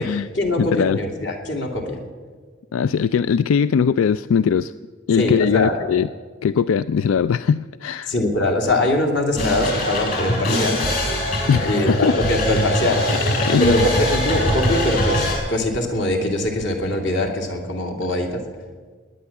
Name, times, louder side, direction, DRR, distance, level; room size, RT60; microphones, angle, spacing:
voice 1, 0.0-2.0 5.2-5.7 8.1-10.8 11.6-13.0 13.6-18.4, left 1 dB, 60° left, 3 dB, 2.6 m, -22 dB
voice 2, 0.6-1.0 2.7-4.7 5.1-6.1 6.4-8.1 11.5-12.2 13.1-13.8, left 7 dB, 90° left, 15 dB, 0.3 m, -20 dB
sound 1, 9.4-15.3, equal, 45° left, 5.7 m, -22 dB
20.0 x 9.9 x 7.1 m, 1.5 s
head